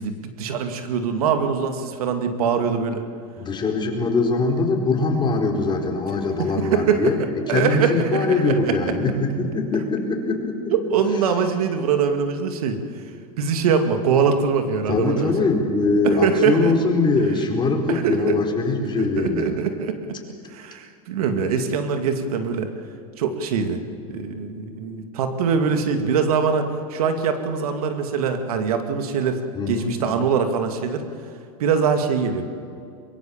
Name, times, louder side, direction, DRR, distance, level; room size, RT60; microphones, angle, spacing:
voice 1, 0.0-3.0 6.4-7.1 7.5-8.8 10.7-13.0 13.4-15.5 16.0-16.7 17.9-18.4 19.0-20.0 20.5-22.7 23.2-23.8 24.1-29.4 29.7-31.0 31.6-32.4, right 6 dB, 75° right, 6 dB, 2.4 m, -23 dB
voice 2, 3.4-10.7 14.9-19.6 29.5-30.0, left 3 dB, 25° left, 2 dB, 4.4 m, -22 dB
23.0 x 22.0 x 7.3 m, 2.4 s
hypercardioid pair, 105°, 19 cm